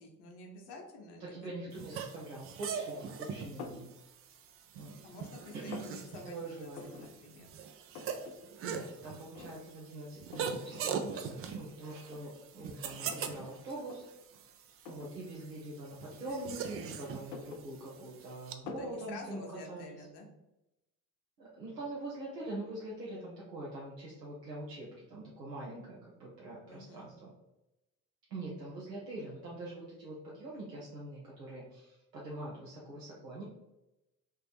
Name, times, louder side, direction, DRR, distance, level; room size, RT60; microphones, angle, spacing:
voice 1, 0.0-1.5 5.0-7.5 18.8-20.3 26.7-27.1, left 2 dB, 55° left, 1 dB, 1.0 m, -49 dB
voice 2, 1.2-3.9 4.7-5.0 5.5-5.8 6.2-7.0 8.6-14.1 14.9-20.1 21.4-27.3 28.3-33.4, right 2 dB, 85° right, -6 dB, 0.7 m, -44 dB
sound 1, 1.7-18.5, right 6 dB, 30° right, 0.4 m, -42 dB
sound 2, 3.6-3.9 4.4-5.1 5.4-6.0 6.7-7.1 7.4-7.5 7.7-8.4 8.7-8.8 9.3-9.8 10.3-10.6 11.4-11.5 12.1-13.4 13.8-14.0 14.8-15.2 16.1-16.8 17.1-18.2 18.7-19.0, left 5 dB, 80° left, 0.6 m, -47 dB
3.2 x 2.8 x 3.4 m, 0.95 s
figure-of-eight pair, 50°, 48 cm